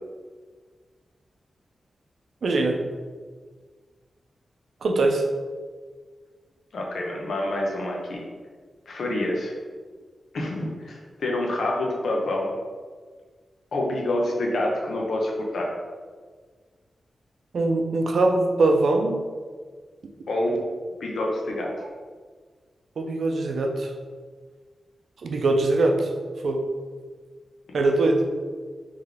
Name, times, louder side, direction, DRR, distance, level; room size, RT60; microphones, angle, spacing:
voice 1, 2.4-2.8 4.8-5.2 17.5-19.2 23.0-23.9 25.2-26.1 26.4-26.6 27.7-28.2, right 2 dB, 70° right, 3 dB, 0.5 m, -22 dB
voice 2, 6.7-8.2 8.9-9.5 10.3-12.5 13.7-15.8 20.3-20.6 21.0-21.7 27.7-27.8, left 1 dB, 70° left, -1 dB, 0.8 m, -27 dB
3.7 x 3.2 x 3.4 m, 1.5 s
wide cardioid pair, 120°, 0 cm